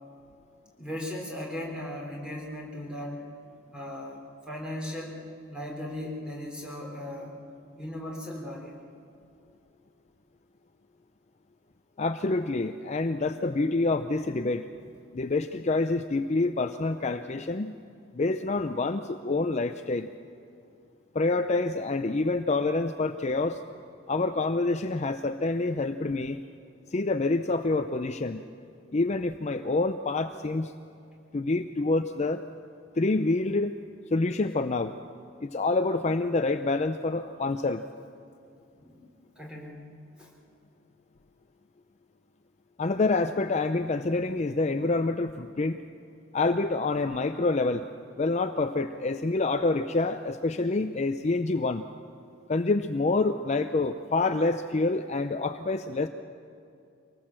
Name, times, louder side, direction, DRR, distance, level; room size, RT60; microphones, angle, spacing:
voice 1, 0.8-3.2 3.7-5.2 5.5-7.4 7.8-8.8 14.7-14.9 31.8-31.9 38.8-39.0 39.4-39.9 40.2-40.3, left 1 dB, 5° right, -2 dB, 3.8 m, -37 dB
voice 2, 12.0-14.7 15.1-17.7 18.1-20.1 21.1-23.6 24.1-26.4 26.9-28.4 28.9-30.7 31.3-32.4 33.0-33.8 34.1-35.0 35.4-37.8 42.8-45.8 46.3-47.9 48.2-51.9 52.5-56.1, left 3 dB, 35° left, 8 dB, 0.5 m, -27 dB
24.5 x 19.0 x 7.5 m, 2.5 s
head